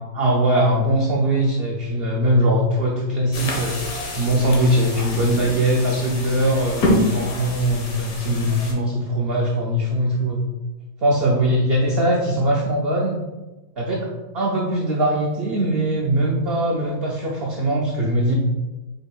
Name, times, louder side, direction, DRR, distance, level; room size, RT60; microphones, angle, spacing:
voice 1, 0.1-3.8 4.1-10.4 11.0-13.2 13.8-14.1 14.3-18.3, right 1 dB, 80° right, -2 dB, 0.5 m, -21 dB
sound 1, 3.3-8.7, left 1 dB, 70° left, 1.4 m, -27 dB
5.2 x 3.9 x 2.3 m, 1.1 s
omnidirectional pair, 1.7 m